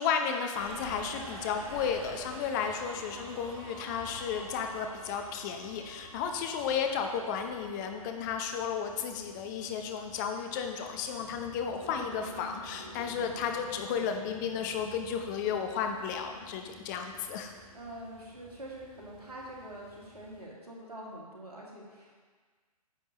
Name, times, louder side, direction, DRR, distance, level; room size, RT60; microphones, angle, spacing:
voice 1, 0.0-17.5, left 7 dB, 30° left, 5 dB, 0.7 m, -33 dB
Subway metro underground, 0.5-20.4, right 1 dB, 50° right, 2.2 m, -50 dB
sound 1, 10.2-18.0, left 3 dB, 5° right, 2.0 m, -51 dB
voice 2, 17.7-22.2, right 1 dB, 85° right, -3 dB, 2.2 m, -45 dB
9.8 x 7.2 x 3.0 m, 1.5 s
figure-of-eight pair, 125°, 19 cm